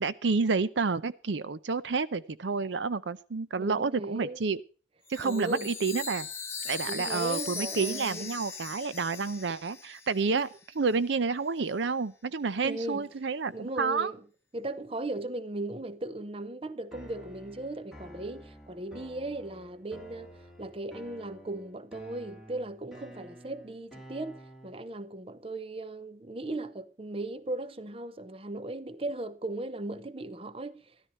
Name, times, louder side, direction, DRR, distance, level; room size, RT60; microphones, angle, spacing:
voice 1, 0.0-4.6 5.1-6.3 6.6-10.5 10.7-14.1, right 4 dB, 80° right, 0.6 m, -29 dB
voice 2, 3.6-4.4 5.2-5.7 6.9-8.3 12.6-13.1 13.5-14.2 14.5-31.0, right 2 dB, 30° right, 0.7 m, -37 dB
Chime, 5.1-10.6, left 6 dB, 15° left, 1.3 m, -39 dB
sound 1, 16.9-24.9, right 1 dB, ahead, 2.7 m, -50 dB
13.5 x 12.5 x 4.2 m
head